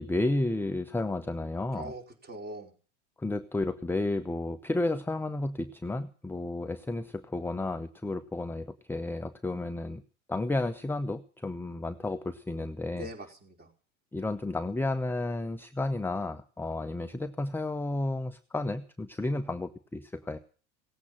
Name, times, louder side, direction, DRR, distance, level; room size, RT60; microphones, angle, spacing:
voice 1, 0.0-1.9 3.2-10.0 10.3-13.1 14.1-20.4, left 2 dB, 5° left, 8 dB, 0.7 m, -32 dB
voice 2, 1.7-2.7 12.9-13.7, right 1 dB, 25° right, 3 dB, 4.8 m, -42 dB
17.5 x 8.4 x 8.9 m, 0.40 s
hypercardioid pair, 95°, 36 cm